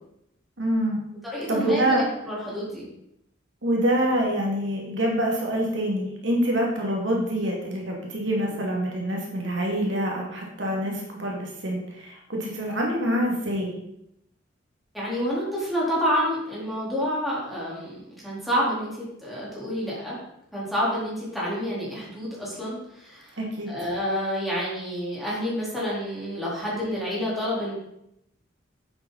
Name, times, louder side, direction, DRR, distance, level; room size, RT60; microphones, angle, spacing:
voice 1, 0.6-1.0 1.5-2.1 3.6-13.7 23.4-23.8, right 1 dB, 80° right, -1 dB, 2.5 m, -26 dB
voice 2, 1.2-2.9 14.9-20.2 20.5-23.4 23.7-27.7, equal, ahead, -7 dB, 4.2 m, -28 dB
9.6 x 7.9 x 4.2 m, 0.80 s
head